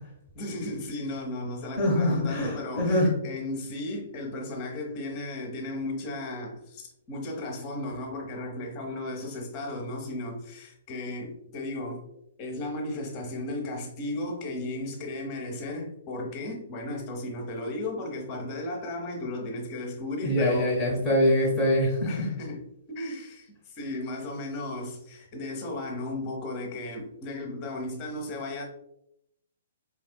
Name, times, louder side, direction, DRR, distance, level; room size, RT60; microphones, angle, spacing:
voice 1, 0.3-12.0 12.4-20.7 22.1-28.6, left 2 dB, 30° left, 0.9 m, -35 dB
voice 2, 1.8-3.1 20.2-22.3, left 1 dB, 5° left, 1.1 m, -24 dB
4.3 x 3.1 x 2.2 m
figure-of-eight pair, 120°, 0 cm